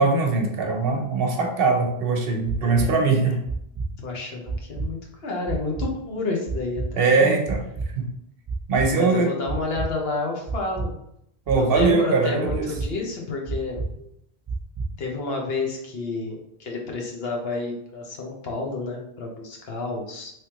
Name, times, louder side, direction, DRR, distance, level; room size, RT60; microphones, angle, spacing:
voice 1, 0.0-3.4 7.0-7.6 8.0-8.1 8.7-9.3 11.5-12.7, right 4 dB, 65° right, 2 dB, 0.8 m, -21 dB
sound 1, 2.5-2.9 3.5-3.9 4.5-4.9 5.5-5.9 6.5-6.9 7.5-7.9 8.5-8.9 9.5-9.9 10.5-10.9 11.5-11.9 12.5-12.9 13.5-13.9 14.5-14.9, right 3 dB, 30° right, 0.4 m, -28 dB
voice 2, 2.6-3.3 4.0-7.3 8.9-10.9 11.5-13.8 15.0-20.3, left 3 dB, 70° left, 0 dB, 1.0 m, -30 dB
3.3 x 3.1 x 2.9 m, 0.75 s
omnidirectional pair, 1.1 m